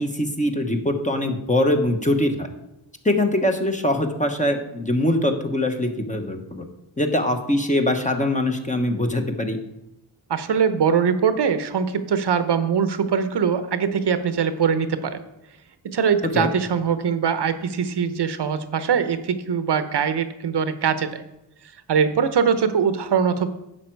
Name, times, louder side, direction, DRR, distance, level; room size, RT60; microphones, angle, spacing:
voice 1, 0.0-2.5 3.0-6.7 7.0-9.6 16.3-16.5, left 1 dB, 15° left, 4 dB, 1.1 m, -22 dB
voice 2, 10.3-15.2 15.9-21.2 21.9-23.5, right 6 dB, 60° right, 11 dB, 0.9 m, -22 dB
11.0 x 7.5 x 4.6 m, 0.89 s
wide cardioid pair, 100°, 45 cm